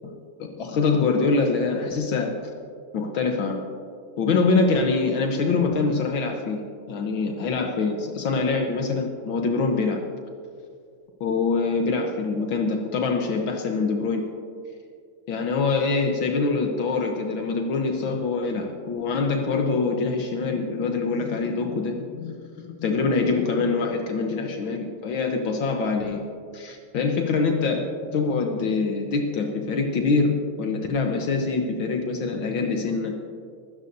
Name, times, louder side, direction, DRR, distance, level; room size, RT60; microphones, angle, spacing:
voice 1, 0.6-2.3 2.9-3.6 4.2-10.0 11.2-14.2 15.3-26.3 26.5-33.1, left 4 dB, 75° left, 2 dB, 1.8 m, -24 dB
24.5 x 13.0 x 2.7 m, 2.2 s
omnidirectional pair, 2.2 m